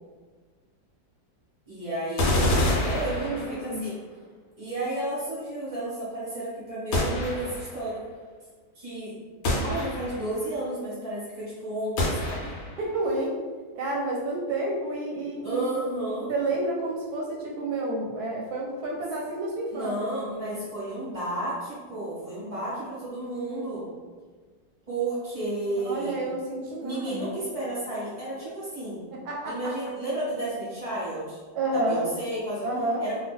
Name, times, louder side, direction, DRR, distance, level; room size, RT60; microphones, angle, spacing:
voice 1, 1.7-2.3 2.5-4.0 4.6-8.0 8.7-9.1 9.6-12.5 15.4-16.3 19.7-23.9 24.9-26.1 26.8-29.0 29.4-31.4 31.7-32.7 33.0-33.2, right 1 dB, 45° right, -9 dB, 0.4 m, -32 dB
sound 1, 2.2-3.8 6.9-7.8 9.4-10.4 12.0-12.8, left 1 dB, 65° left, 0.9 m, -27 dB
voice 2, 3.2-3.9 12.8-13.3 13.8-15.6 16.3-19.9 20.2-20.6 25.8-27.4 29.1-29.7 31.5-32.1 32.6-33.0, right 2 dB, 70° right, -2 dB, 1.0 m, -30 dB
2.7 x 2.4 x 3.4 m, 1.5 s
omnidirectional pair, 2.0 m